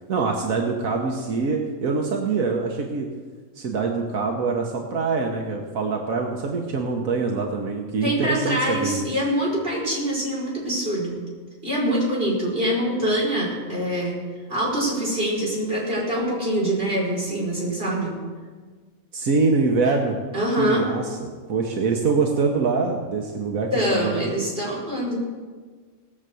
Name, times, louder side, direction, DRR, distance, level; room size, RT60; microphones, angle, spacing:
voice 1, 0.1-3.1 3.5-9.1 19.1-20.2 20.6-21.2 21.5-24.3, right 4 dB, 85° right, 1 dB, 1.5 m, -24 dB
voice 2, 8.0-11.2 11.6-14.1 14.5-18.1 20.3-20.8 23.7-25.2, equal, 40° right, -5 dB, 5.3 m, -24 dB
18.5 x 6.8 x 7.7 m, 1.5 s
omnidirectional pair, 1.4 m